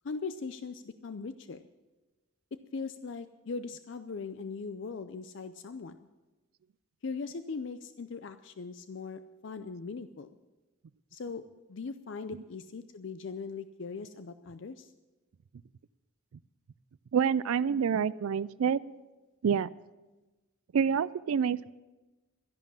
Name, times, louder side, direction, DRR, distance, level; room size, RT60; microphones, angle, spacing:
voice 1, 0.0-1.6 2.5-6.0 7.0-10.3 11.1-11.4 11.7-14.9, left 4 dB, 60° left, 11 dB, 0.5 m, -40 dB
voice 2, 17.1-18.8 19.4-19.7 20.7-21.7, right 7 dB, 85° right, 19 dB, 0.4 m, -27 dB
12.5 x 11.0 x 7.4 m, 1.1 s
head